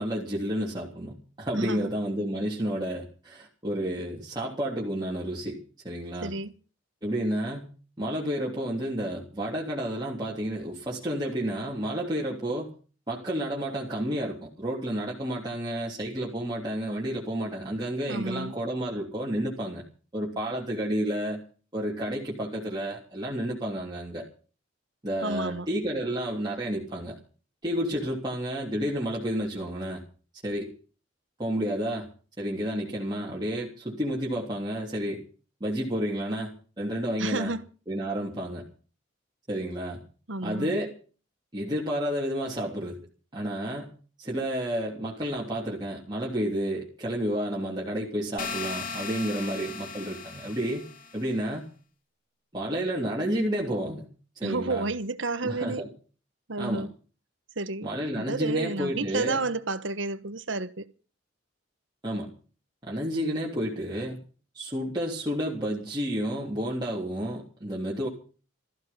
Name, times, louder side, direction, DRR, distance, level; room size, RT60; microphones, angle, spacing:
voice 1, 0.0-5.6 5.8-6.3 7.0-7.7 8.0-12.7 13.1-19.8 20.1-21.4 21.7-24.2 25.0-27.2 27.6-30.0 30.4-30.7 31.4-32.1 32.4-35.2 35.6-37.5 37.9-38.6 39.5-40.0 40.4-40.9 41.5-43.0 43.3-43.9 44.2-50.8 51.1-51.7 52.5-54.1 54.3-54.9 55.4-55.9 56.6-56.9 57.8-59.4 62.0-62.3 62.8-64.2 64.5-68.1, equal, 20° right, 3.3 m, -30 dB
voice 2, 1.6-1.9 6.2-6.5 18.1-18.5 25.2-25.7 37.2-37.7 40.3-40.7 54.4-55.8 56.5-56.9 57.6-57.9 58.2-60.9, right 3 dB, 65° right, 1.3 m, -31 dB
sound 1, 48.4-51.3, left 4 dB, 40° left, 2.1 m, -37 dB
17.5 x 14.5 x 5.7 m
head